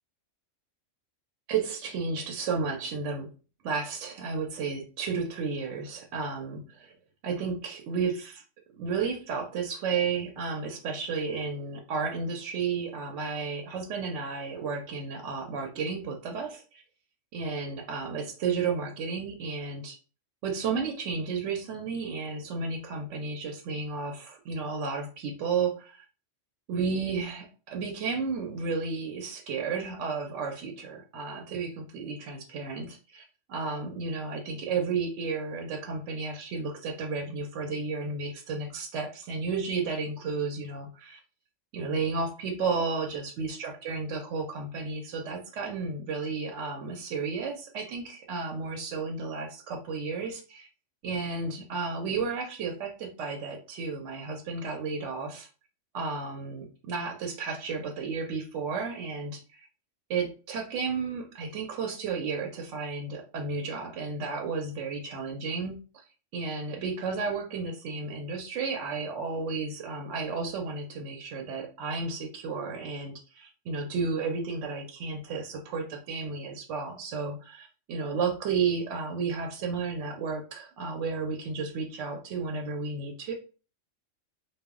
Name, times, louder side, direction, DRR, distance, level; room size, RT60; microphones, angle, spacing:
voice 1, 1.5-3.3 3.6-6.9 7.2-8.4 8.8-16.8 17.3-20.0 20.4-26.0 26.7-41.2 41.7-50.7 51.0-55.5 55.9-59.6 60.1-65.8 66.3-83.3, right 4 dB, 75° right, 2 dB, 0.9 m, -32 dB
2.2 x 2.0 x 3.5 m, 0.36 s
omnidirectional pair, 1.3 m